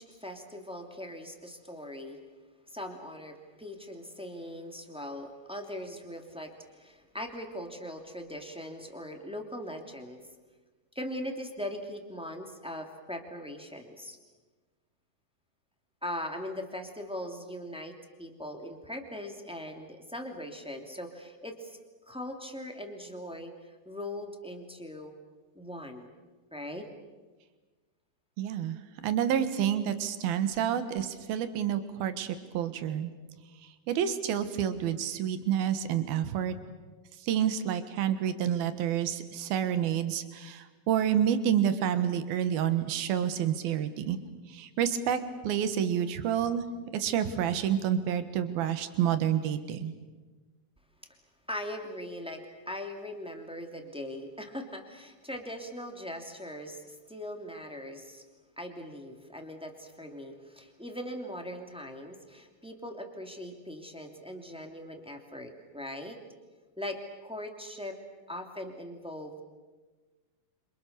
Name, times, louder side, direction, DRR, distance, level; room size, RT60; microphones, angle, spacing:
voice 1, 0.0-2.2 2.7-10.2 10.9-14.2 16.0-21.8 22.1-25.1 25.5-26.1 26.5-26.9 51.5-58.2 58.6-66.2 66.8-68.0 68.3-69.4, left 1 dB, ahead, 3 dB, 2.1 m, -40 dB
voice 2, 28.4-28.8 29.0-33.1 33.9-36.6 37.2-44.2 44.5-46.6 46.9-49.9, right 9 dB, 80° right, 10 dB, 3.4 m, -29 dB
28.5 x 27.0 x 6.8 m, 1.3 s
omnidirectional pair, 4.3 m